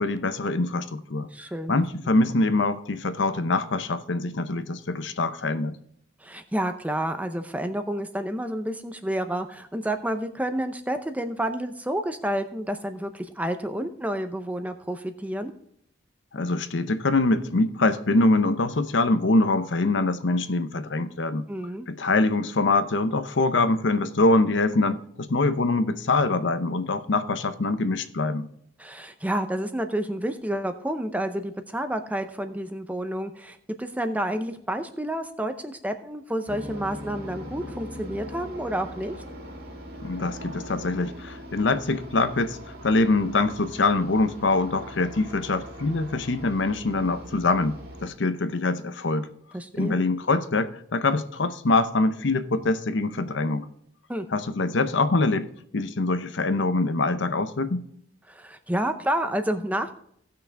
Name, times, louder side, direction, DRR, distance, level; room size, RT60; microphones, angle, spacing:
voice 1, 0.0-1.3 1.7-5.8 16.3-21.5 21.9-28.5 40.0-42.6 42.8-49.3 49.7-53.7 54.3-55.5 55.7-57.9, left 2 dB, 65° left, 0.7 m, -24 dB
voice 2, 1.3-1.8 6.2-15.5 21.5-21.9 28.8-39.2 49.5-50.1 54.1-54.3 58.3-59.9, right 1 dB, 5° right, 0.6 m, -29 dB
sound 1, 36.5-48.1, equal, 50° right, 2.3 m, -41 dB
17.0 x 6.3 x 3.4 m
head